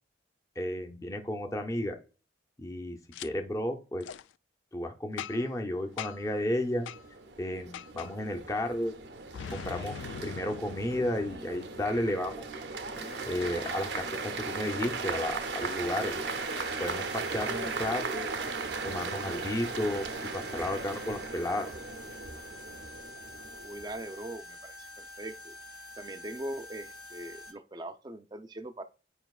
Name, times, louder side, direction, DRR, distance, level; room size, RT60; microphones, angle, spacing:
voice 1, 0.6-1.9 2.6-4.1 4.7-6.9 7.4-8.9 9.5-9.9 10.2-12.5 13.3-14.1 14.5-16.2 16.8-18.3 18.8-21.7, left 1 dB, 15° left, 3 dB, 0.6 m, -33 dB
Boom, 3.1-3.3 4.0-4.2 5.2-5.6 6.0-6.3 6.9-7.0 7.7-8.1 9.3-12.0, left 8 dB, 80° left, 0.3 m, -42 dB
sound 1, 6.1-24.4, right 4 dB, 60° right, 0.6 m, -38 dB
sound 2, 12.9-27.5, left 2 dB, 50° left, 1.9 m, -47 dB
voice 2, 23.6-25.5 26.0-28.8, right 1 dB, 20° right, 9 dB, 0.5 m, -41 dB
9.9 x 4.9 x 2.4 m, 0.36 s
head